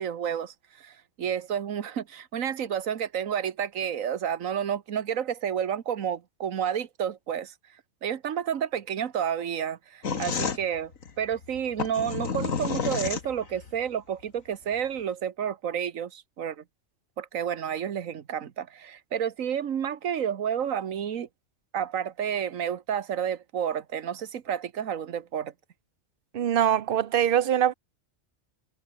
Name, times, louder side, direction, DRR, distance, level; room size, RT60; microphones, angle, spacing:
voice 1, 0.0-7.5 8.0-10.9 11.2-16.6 17.2-21.3 21.7-25.5, right 8 dB, 90° right, 1.5 m, -30 dB
sound 1, 10.0-13.7, left 6 dB, 85° left, 2.2 m, -30 dB
voice 2, 26.3-27.7, right 10 dB, 50° right, 0.8 m, -23 dB
omnidirectional pair, 1.3 m